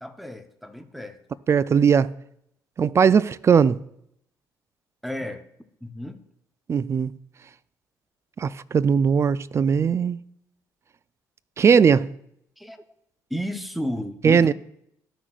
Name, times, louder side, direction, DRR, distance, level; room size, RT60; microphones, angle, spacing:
voice 1, 0.0-1.2 5.0-5.4 5.8-6.2 12.6-12.8 13.3-14.5, equal, ahead, 0.8 m, -32 dB
voice 2, 1.5-2.1 2.8-3.8 6.7-7.1 8.4-10.2 11.6-12.1 14.2-14.5, right 6 dB, 35° right, 0.4 m, -19 dB
14.0 x 6.0 x 2.4 m
supercardioid pair, 75°, 8 cm